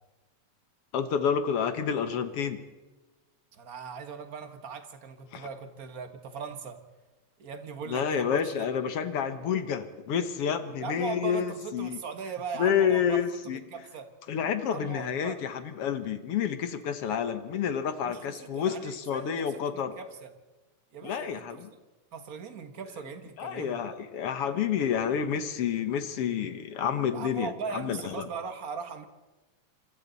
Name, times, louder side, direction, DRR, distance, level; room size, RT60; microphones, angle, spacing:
voice 1, 0.9-2.6 5.3-5.5 7.9-12.0 12.6-13.6 14.3-20.0 21.0-21.7 23.4-28.3, left 8 dB, 60° left, 10 dB, 1.9 m, -29 dB
voice 2, 3.5-6.8 7.4-8.7 10.8-14.1 14.7-15.4 18.0-20.3 20.9-21.6 22.1-23.8 27.1-29.1, right 5 dB, 40° right, 8 dB, 1.3 m, -39 dB
27.5 x 25.5 x 4.1 m, 1.2 s
omnidirectional pair, 3.3 m